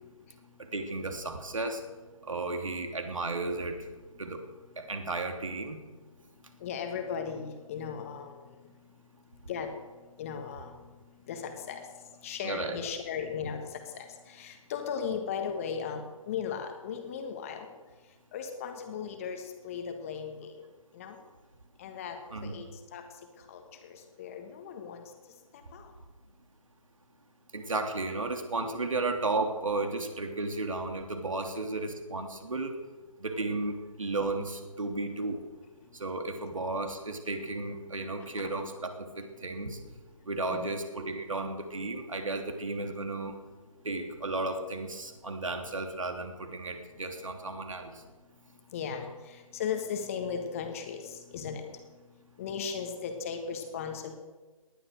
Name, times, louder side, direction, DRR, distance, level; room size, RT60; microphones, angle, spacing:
voice 1, 0.7-1.8 2.3-3.8 4.2-4.4 4.8-5.8 12.4-12.8 22.3-22.5 27.5-32.7 33.2-35.4 35.9-39.8 40.3-43.4 43.8-47.9, right 2 dB, 65° right, 4 dB, 3.1 m, -34 dB
voice 2, 6.6-8.4 9.5-9.7 10.2-10.8 11.3-11.8 12.2-17.7 18.3-20.5 20.9-21.2 21.8-22.2 22.4-22.7 22.9-23.0 23.5-25.0 25.7-25.9 38.2-38.3 40.5-40.7 48.7-51.6 52.4-54.1, left 7 dB, 25° left, 5 dB, 1.6 m, -37 dB
19.0 x 11.5 x 6.6 m, 1.3 s
figure-of-eight pair, 150°, 18 cm